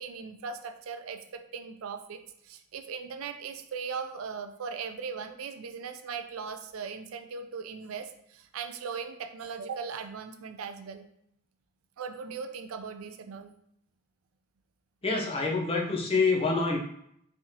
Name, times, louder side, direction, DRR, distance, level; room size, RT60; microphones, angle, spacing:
voice 1, 0.0-2.2 2.4-11.0 12.0-13.5 16.4-16.6, right 5 dB, 80° right, 8 dB, 0.4 m, -39 dB
voice 2, 15.0-16.8, left 4 dB, 25° left, -1 dB, 0.6 m, -26 dB
3.6 x 3.3 x 2.8 m, 0.72 s
head